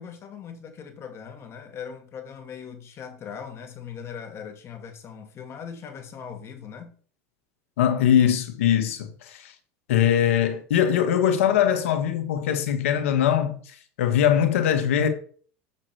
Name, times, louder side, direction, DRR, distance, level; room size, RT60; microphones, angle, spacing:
voice 1, 0.0-6.9, left 7 dB, 40° left, 2.3 m, -40 dB
voice 2, 7.8-9.5 9.9-15.1, left 9 dB, 85° left, 1.8 m, -22 dB
8.0 x 7.4 x 4.6 m
supercardioid pair, 110°, 7 cm